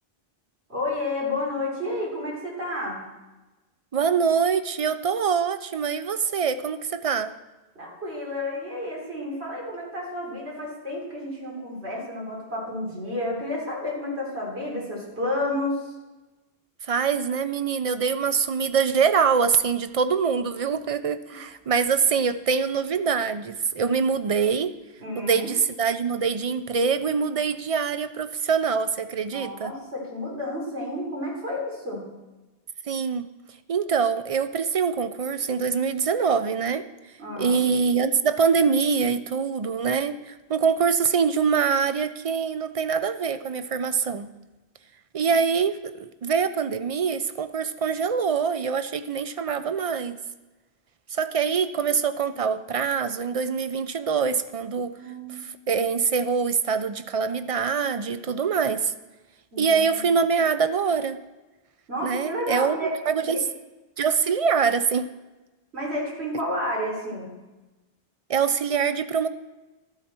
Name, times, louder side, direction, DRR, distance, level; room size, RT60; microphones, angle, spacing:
voice 1, 0.7-3.0 7.8-15.9 21.3-21.4 25.0-25.5 29.3-32.1 37.2-37.6 55.0-55.4 59.5-60.0 61.9-62.9 63.2-63.4 65.7-67.3, left 1 dB, 80° right, -3 dB, 3.6 m, -31 dB
voice 2, 3.9-7.3 16.8-24.7 25.2-29.7 32.9-33.3 33.7-36.9 37.4-44.3 45.1-50.2 51.1-54.9 55.3-58.9 59.6-61.2 62.0-62.8 63.1-63.4 64.0-65.1 68.3-69.3, right 6 dB, 50° right, 11 dB, 0.4 m, -24 dB
13.0 x 8.7 x 4.4 m, 1.1 s
omnidirectional pair, 1.1 m